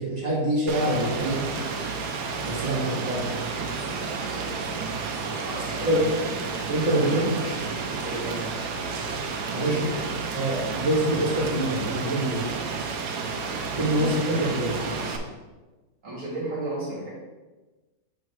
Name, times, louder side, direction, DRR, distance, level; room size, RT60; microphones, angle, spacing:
voice 1, 0.0-1.4 2.4-3.5 5.8-6.0 6.7-7.4 9.5-9.8 10.3-12.5 13.7-14.2 14.5-14.7, right 1 dB, 25° right, -8 dB, 2.3 m, -25 dB
Rain, 0.7-15.2, right 4 dB, 75° right, 1.3 m, -31 dB
voice 2, 3.8-4.8 5.4-6.5 6.9-8.4 9.5-9.9 13.9-15.3 16.0-17.1, right 1 dB, 50° right, -6 dB, 2.3 m, -35 dB
7.0 x 4.1 x 4.8 m, 1.2 s
omnidirectional pair, 1.7 m